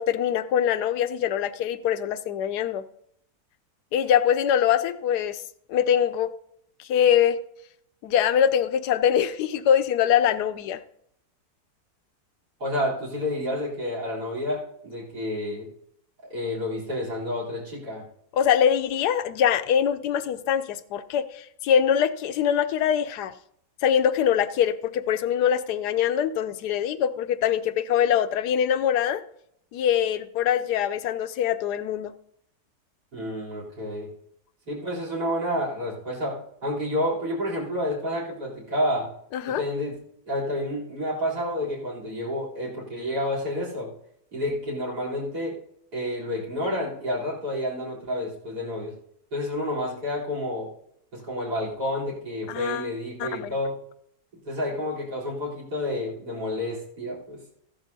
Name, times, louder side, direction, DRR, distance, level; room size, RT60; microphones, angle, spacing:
voice 1, 0.0-2.8 3.9-5.4 5.7-6.3 6.8-7.4 8.0-10.8 18.3-23.3 23.8-29.2 29.7-32.1 39.3-39.6 52.5-52.9 53.2-53.6, left 9 dB, 90° left, 12 dB, 1.2 m, -23 dB
voice 2, 12.6-15.7 16.2-18.0 33.1-34.1 34.7-39.1 39.5-39.9 40.3-43.9 44.3-45.6 45.9-48.9 49.3-50.7 51.1-53.8 54.4-57.4, left 1 dB, 90° right, -4 dB, 4.2 m, -29 dB
15.5 x 11.5 x 2.7 m, 0.73 s
omnidirectional pair, 1.7 m